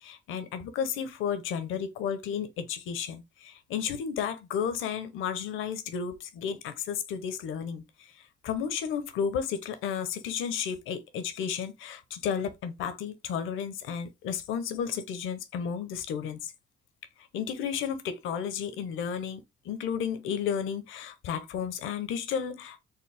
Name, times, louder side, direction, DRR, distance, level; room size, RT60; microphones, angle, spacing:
voice 1, 0.0-7.8 8.4-16.5 17.3-22.8, left 7 dB, 85° left, 0.7 m, -33 dB
4.5 x 2.0 x 3.4 m
cardioid pair, 90°, 20 cm